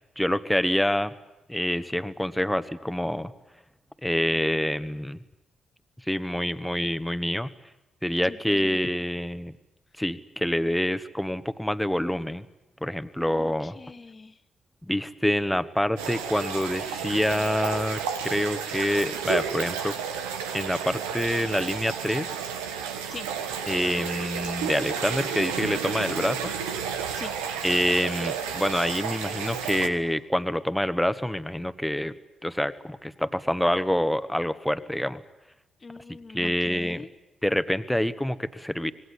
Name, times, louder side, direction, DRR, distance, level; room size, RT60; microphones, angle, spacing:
voice 1, 0.2-1.1 1.5-3.3 4.0-5.2 6.1-7.5 8.0-9.5 10.0-12.4 12.8-13.7 14.9-19.9 20.5-22.3 23.7-27.1 27.6-32.1 32.4-35.2 36.3-37.0 37.4-38.9, left 1 dB, 5° left, 12 dB, 1.5 m, -26 dB
voice 2, 8.2-8.8 13.3-14.4 23.1-23.3 27.1-27.3 35.8-37.1, left 4 dB, 35° left, 13 dB, 1.4 m, -42 dB
sound 1, 16.0-29.9, right 7 dB, 85° right, 1.4 m, -32 dB
25.5 x 19.5 x 10.0 m, 0.96 s
hypercardioid pair, 45°, 0 cm